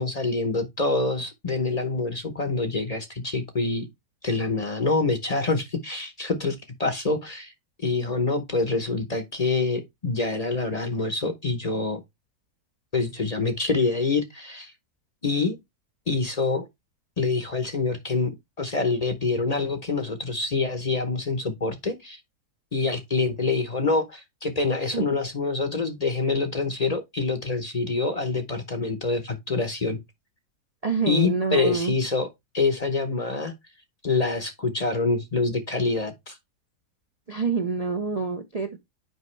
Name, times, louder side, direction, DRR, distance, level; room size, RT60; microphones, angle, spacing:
voice 1, 0.0-3.9 4.2-7.5 7.8-12.0 12.9-14.7 15.2-15.6 16.1-16.7 17.2-18.3 18.6-22.2 22.7-30.0 31.1-32.3 32.5-33.5 34.0-36.4, left 3 dB, 35° left, 0.7 m, -26 dB
voice 2, 30.8-31.9 37.3-38.8, right 5 dB, 50° right, 0.4 m, -26 dB
8.0 x 5.2 x 3.2 m
omnidirectional pair, 1.7 m